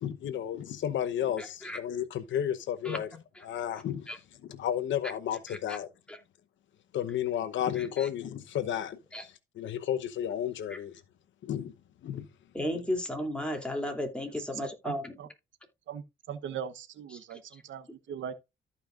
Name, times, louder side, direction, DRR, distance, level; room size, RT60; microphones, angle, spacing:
voice 1, 0.0-3.1 3.4-4.1 4.4-5.9 6.9-10.9 11.4-11.7 12.0-12.3, left 10 dB, 70° left, 0.9 m, -32 dB
voice 2, 1.4-1.8 2.8-3.0 4.1-4.2 5.5-5.8 6.1-6.2 7.8-8.1 9.1-9.2 10.7-10.8 12.5-15.1 17.3-17.4, left 1 dB, 5° left, 2.9 m, -34 dB
voice 3, 14.8-15.3 15.9-18.3, right 8 dB, 75° right, 1.1 m, -40 dB
14.0 x 5.6 x 2.5 m
cardioid pair, 90°, 20 cm